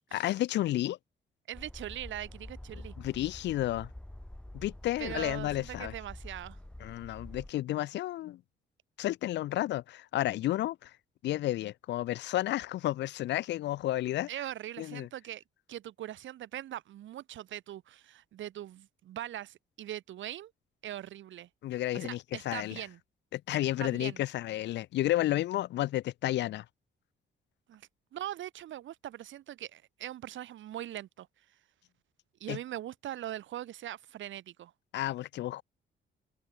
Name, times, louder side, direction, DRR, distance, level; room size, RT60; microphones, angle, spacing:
voice 1, 0.1-1.0 3.0-3.9 4.5-5.9 6.8-8.4 9.0-10.9 11.2-14.3 14.8-15.1 21.6-22.8 23.3-26.6 32.5-32.6 34.9-35.6, left 14 dB, 65° left, 0.4 m, -31 dB
sound 1, 1.5-7.5, left 1 dB, 5° left, 0.7 m, -47 dB
voice 2, 1.5-2.9 5.0-6.6 14.3-15.4 15.7-20.5 20.8-21.5 21.9-23.0 23.8-24.2 27.7-31.3 32.4-34.7, right 12 dB, 75° right, 1.6 m, -41 dB
open air
cardioid pair, 90°, 20 cm